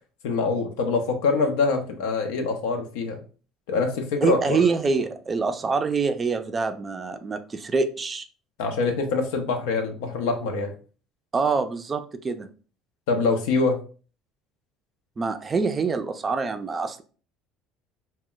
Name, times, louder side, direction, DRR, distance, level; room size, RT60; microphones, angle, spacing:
voice 1, 0.2-3.2 3.7-4.6 8.6-10.7 13.1-13.8, left 4 dB, 85° left, 4 dB, 0.5 m, -24 dB
voice 2, 4.2-8.2 11.3-12.5 15.2-17.0, right 4 dB, 30° right, 9 dB, 0.4 m, -25 dB
2.1 x 2.1 x 3.7 m, 0.38 s
supercardioid pair, 95°, 0 cm